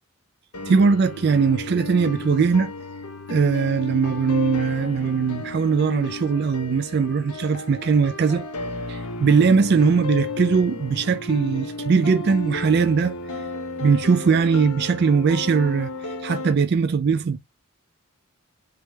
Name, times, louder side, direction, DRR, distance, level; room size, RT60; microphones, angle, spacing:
sound 1, 0.5-16.5, left 3 dB, 90° left, 0.9 m, -33 dB
voice 1, 0.7-2.7 3.3-8.4 8.9-13.2 13.8-17.4, right 5 dB, 50° right, 0.3 m, -20 dB
3.4 x 3.2 x 4.5 m
head